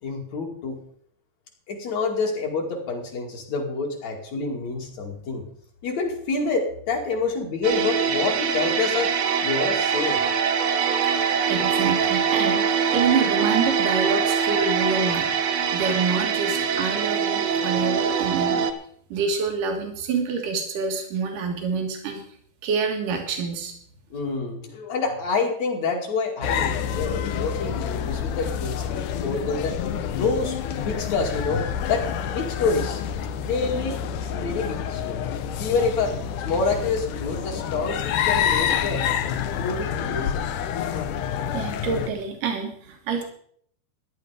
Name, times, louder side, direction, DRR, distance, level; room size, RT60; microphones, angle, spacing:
voice 1, 0.0-0.8 1.7-5.4 5.8-9.1 9.4-10.2 24.1-29.8 30.1-33.0 33.4-35.2 35.6-36.1 36.5-39.0 39.6-40.4, left 4 dB, 60° left, 1 dB, 3.5 m, -27 dB
sound 1, 7.6-18.7, right 7 dB, 65° right, 2.0 m, -23 dB
voice 2, 11.1-15.3 15.7-18.6 19.1-22.2 22.6-23.7 41.1-41.2 41.5-43.2, right 5 dB, 90° right, 3 dB, 3.3 m, -27 dB
sound 2, 26.4-42.1, left 8 dB, 85° left, 2.4 m, -28 dB
14.5 x 11.0 x 5.0 m, 0.62 s
omnidirectional pair, 3.6 m